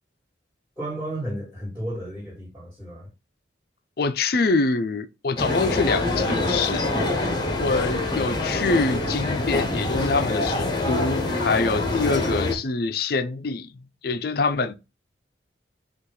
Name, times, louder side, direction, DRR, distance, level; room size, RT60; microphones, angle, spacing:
voice 1, 0.8-3.1, right 1 dB, 15° right, 2.6 m, -33 dB
voice 2, 4.0-6.9 7.6-13.7 14.0-14.7, left 3 dB, 55° left, 0.5 m, -25 dB
sound 1, 5.4-12.6, left 2 dB, 20° left, 1.0 m, -25 dB
5.5 x 2.5 x 3.8 m
head